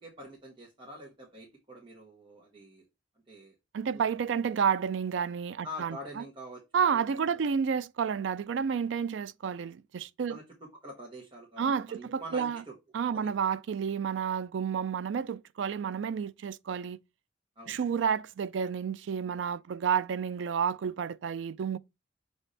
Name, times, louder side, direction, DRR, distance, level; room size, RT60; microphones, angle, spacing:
voice 1, 0.0-2.8 3.3-3.5 3.9-4.0 5.6-7.5 10.3-10.4 10.8-12.7 13.1-13.3 17.5-17.9, equal, 25° right, 1.5 m, -46 dB
voice 2, 3.7-6.2 6.7-10.4 11.6-12.6 12.9-17.0 17.7-21.8, right 7 dB, 65° right, 0.3 m, -30 dB
7.0 x 4.2 x 3.3 m
head